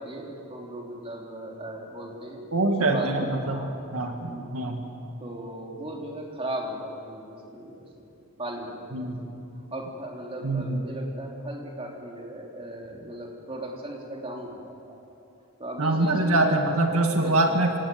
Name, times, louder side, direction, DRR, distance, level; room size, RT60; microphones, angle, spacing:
voice 1, 0.0-2.5 2.8-4.5 5.2-8.1 8.4-15.0 15.6-16.6 17.2-17.6, right 1 dB, 25° right, 0 dB, 3.5 m, -37 dB
voice 2, 2.5-3.6 3.9-4.8 8.9-9.2 10.4-10.8 15.8-17.8, right 2 dB, 80° right, 3 dB, 2.1 m, -24 dB
26.5 x 17.5 x 9.4 m, 2.7 s
head